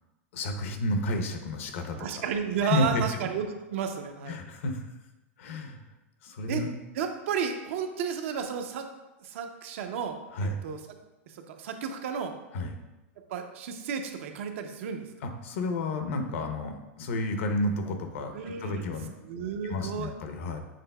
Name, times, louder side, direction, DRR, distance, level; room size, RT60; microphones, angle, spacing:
voice 1, 0.3-2.1 2.6-3.1 4.3-4.8 5.4-5.8 6.2-6.7 10.3-10.6 12.5-12.7 15.2-19.1 19.6-20.6, left 2 dB, 70° left, 6 dB, 0.7 m, -31 dB
voice 2, 2.0-4.4 6.5-6.6 6.9-8.9 9.2-11.0 11.3-12.3 13.3-15.1 18.3-18.9 19.2-20.1, right 7 dB, 65° right, 6 dB, 0.5 m, -33 dB
6.5 x 3.5 x 2.2 m, 1.0 s
supercardioid pair, 135°, 7 cm